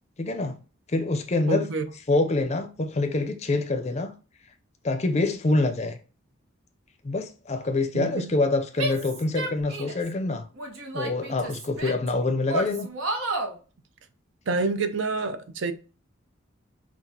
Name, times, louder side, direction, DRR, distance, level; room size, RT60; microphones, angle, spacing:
voice 1, 0.2-0.6 0.9-1.7 2.1-4.1 4.8-6.0 7.0-10.5 10.9-12.9, left 2 dB, 30° left, 0.5 m, -25 dB
voice 2, 1.5-1.9 7.9-8.3 14.5-15.7, right 3 dB, 65° right, 0.5 m, -27 dB
Female speech woman speaking / Yell, 8.8-10.1 10.6-12.1 12.5-13.5, right 2 dB, 85° right, 1.0 m, -31 dB
5.9 x 2.4 x 2.7 m
head